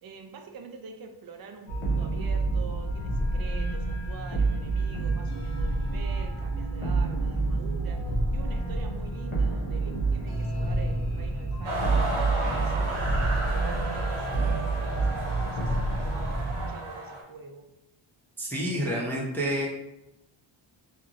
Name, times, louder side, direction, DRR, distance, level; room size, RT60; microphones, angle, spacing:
voice 1, 0.0-12.0 12.6-17.7, right 4 dB, 50° right, 4 dB, 0.4 m, -46 dB
sound 1, 1.7-16.7, right 2 dB, 85° left, 1.0 m, -28 dB
sound 2, 11.6-17.2, right 1 dB, 75° right, 0.8 m, -33 dB
voice 2, 18.4-19.7, equal, 5° left, -4 dB, 0.5 m, -28 dB
2.9 x 2.5 x 2.4 m, 0.91 s
wide cardioid pair, 100°, 49 cm